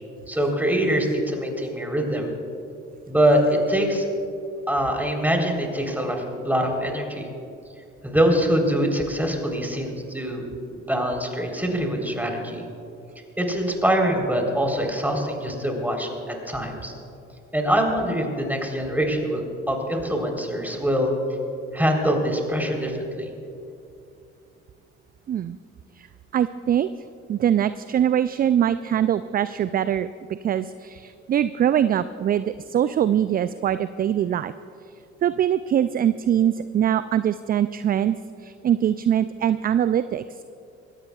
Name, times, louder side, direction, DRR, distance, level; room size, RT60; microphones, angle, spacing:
voice 1, 0.3-2.3 3.1-4.1 4.7-7.3 8.0-12.6 13.4-16.9 17.5-21.1 21.7-23.3, equal, 5° right, 1 dB, 3.7 m, -24 dB
voice 2, 26.3-26.9 27.3-30.1 30.4-34.5 35.2-40.4, right 10 dB, 25° right, 14 dB, 0.3 m, -23 dB
23.5 x 17.5 x 2.4 m, 2.6 s
figure-of-eight pair, 50°, 34 cm